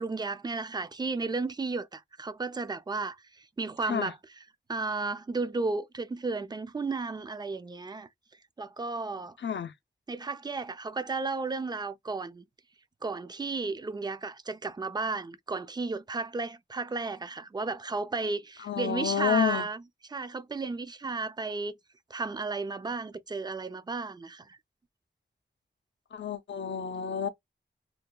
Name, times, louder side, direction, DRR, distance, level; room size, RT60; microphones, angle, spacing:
voice 1, 0.0-4.2 4.7-8.1 8.6-9.4 10.1-12.5 13.0-19.8 20.1-21.8 22.1-24.6, right 3 dB, 20° right, 0.3 m, -33 dB
voice 2, 9.4-9.7 18.6-19.7 26.1-27.3, left 7 dB, 80° left, 0.5 m, -29 dB
2.8 x 2.1 x 2.2 m
wide cardioid pair, 105°, 19 cm